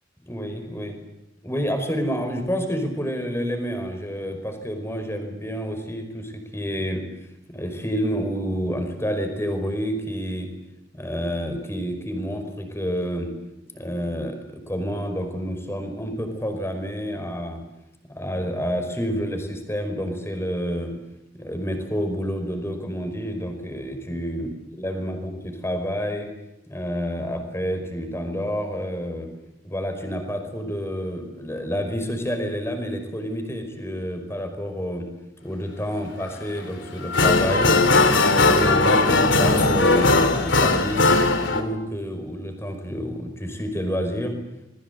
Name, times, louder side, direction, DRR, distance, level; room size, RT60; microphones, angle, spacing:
voice 1, 0.2-1.0 1.4-7.0 7.5-10.5 10.9-13.3 13.7-17.6 18.1-20.9 21.3-24.5 24.8-26.3 26.7-29.3 29.6-35.1 35.4-37.7 38.5-41.1 41.5-44.3, equal, 15° left, 6 dB, 5.2 m, -29 dB
sound 1, 36.3-36.4 36.8-41.6, left 3 dB, 75° left, 3.2 m, -18 dB
27.5 x 22.0 x 8.3 m, 0.89 s
head